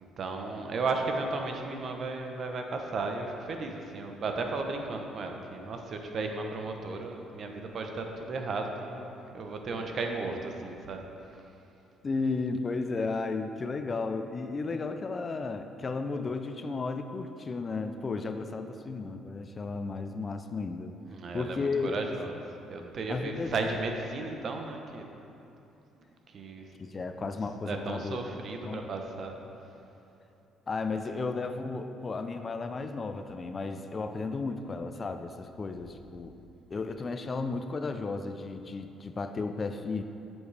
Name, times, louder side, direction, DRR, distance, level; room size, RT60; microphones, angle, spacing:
voice 1, 0.0-11.0 21.1-22.3 22.7-25.1 26.3-26.7 27.7-29.3, right 3 dB, 55° right, 3 dB, 0.8 m, -34 dB
voice 2, 12.0-20.9 21.3-22.2 23.1-23.5 26.8-28.2 28.6-28.8 30.7-36.4 36.7-40.0, left 4 dB, 35° left, 8 dB, 0.4 m, -34 dB
7.9 x 7.3 x 3.4 m, 2.8 s
supercardioid pair, 70°, 0 cm